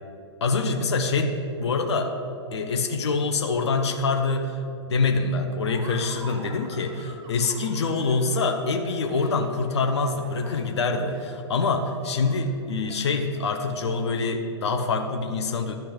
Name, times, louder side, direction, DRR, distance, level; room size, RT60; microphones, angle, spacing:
voice 1, 0.4-2.2 2.5-4.6 4.9-15.7, left 3 dB, 65° left, 4 dB, 0.9 m, -25 dB
Laughter, 5.6-13.9, right 3 dB, 25° right, 1.4 m, -46 dB
12.0 x 4.4 x 8.0 m, 2.6 s
figure-of-eight pair, 115°, 15 cm